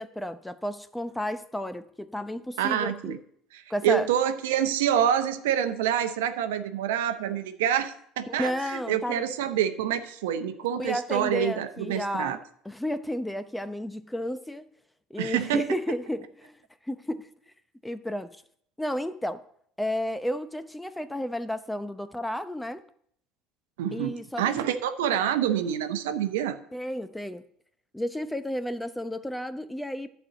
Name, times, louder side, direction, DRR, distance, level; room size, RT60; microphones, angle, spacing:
voice 1, 0.0-3.2 3.7-4.1 8.3-9.2 10.8-12.4 12.6-14.7 15.1-17.3 17.8-18.4 18.8-19.4 19.8-22.8 23.9-24.7 26.7-27.5 27.9-30.1, left 1 dB, 5° left, 0.8 m, -32 dB
voice 2, 2.6-3.2 3.8-12.4 15.2-15.7 23.8-26.6, right 10 dB, 80° right, 0.8 m, -27 dB
11.0 x 4.6 x 7.7 m
hypercardioid pair, 70°, 0 cm